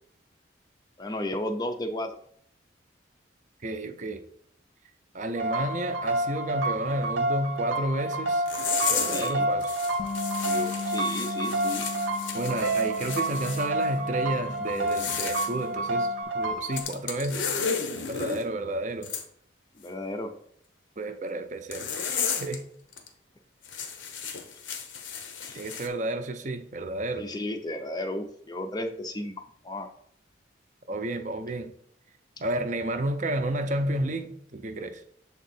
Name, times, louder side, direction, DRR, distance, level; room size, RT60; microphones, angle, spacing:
voice 1, 1.0-2.2 9.1-9.5 10.4-11.9 19.8-20.3 24.3-24.4 25.5-25.6 27.2-29.9, left 1 dB, 20° left, 6 dB, 0.4 m, -34 dB
voice 2, 3.6-4.2 5.1-8.4 8.9-9.8 12.3-16.1 16.3-17.5 18.1-19.1 21.0-22.6 25.5-27.3 30.9-31.7 32.4-35.0, right 1 dB, 40° right, 8 dB, 0.5 m, -31 dB
sound 1, 5.4-16.8, right 2 dB, 90° right, 0.9 m, -29 dB
sound 2, 8.5-9.3 9.6-13.7 14.8-15.5 16.7-18.4 19.0-19.2 21.7-22.6 22.9-23.1 23.6-25.9, left 6 dB, 85° left, 0.8 m, -33 dB
Bass guitar, 10.0-16.2, left 5 dB, 55° left, 0.7 m, -39 dB
7.0 x 3.6 x 4.2 m, 0.66 s
head